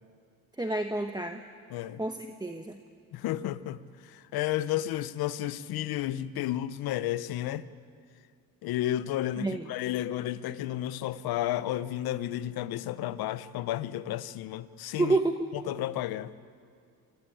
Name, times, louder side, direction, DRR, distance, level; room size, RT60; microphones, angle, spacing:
voice 1, 0.6-1.4 2.0-2.8 9.4-9.7 15.0-15.5, right 2 dB, 10° right, 1.1 m, -29 dB
voice 2, 1.7-2.0 3.1-7.6 8.6-15.2 15.7-16.3, left 13 dB, 80° left, 0.8 m, -32 dB
25.5 x 15.0 x 9.1 m
cardioid pair, 80°, 36 cm